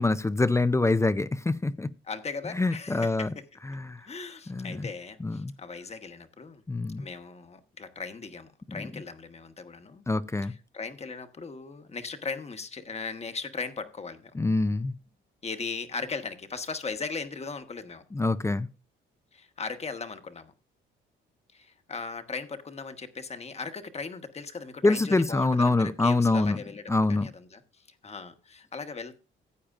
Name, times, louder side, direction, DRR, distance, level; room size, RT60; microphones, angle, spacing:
voice 1, 0.0-1.9 2.6-3.3 3.7-4.0 4.5-4.9 5.2-5.5 6.7-7.0 10.1-10.5 14.3-14.9 18.1-18.7 24.8-26.6 26.9-27.3, left 2 dB, 15° left, 0.5 m, -25 dB
voice 2, 2.0-3.5 4.0-6.6 7.0-10.0 10.4-14.4 15.4-18.0 19.3-20.5 21.5-29.2, left 4 dB, 30° left, 1.2 m, -38 dB
15.0 x 8.7 x 2.5 m
cardioid pair, 90°, 20 cm